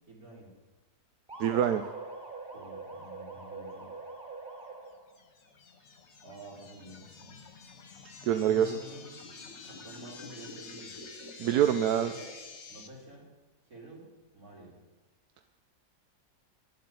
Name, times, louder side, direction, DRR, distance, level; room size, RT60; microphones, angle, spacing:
voice 1, 0.1-0.5 2.5-3.9 6.2-7.5 8.2-9.1 9.6-11.0 11.6-12.2 12.6-13.3 13.6-14.1 14.3-14.8, right 1 dB, 55° right, -4 dB, 5.0 m, -49 dB
sound 1, 1.3-5.2, right 3 dB, 5° right, 4.3 m, -43 dB
voice 2, 1.4-1.8 8.2-8.8 11.4-12.1, right 10 dB, 70° right, 9 dB, 1.1 m, -25 dB
sound 2, 5.1-12.9, left 3 dB, 45° left, 1.5 m, -48 dB
13.0 x 8.0 x 9.4 m, 1.1 s
omnidirectional pair, 1.8 m